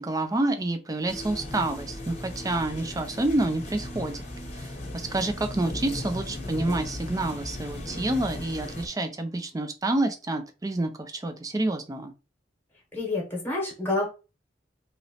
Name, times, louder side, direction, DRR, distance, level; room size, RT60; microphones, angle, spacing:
voice 1, 0.0-4.3 4.5-12.1, right 2 dB, 20° right, 0.4 m, -28 dB
sound 1, 1.1-8.9, left 1 dB, 35° left, 0.8 m, -37 dB
voice 2, 12.9-14.1, left 2 dB, 10° left, 1.0 m, -28 dB
3.0 x 2.9 x 2.7 m
head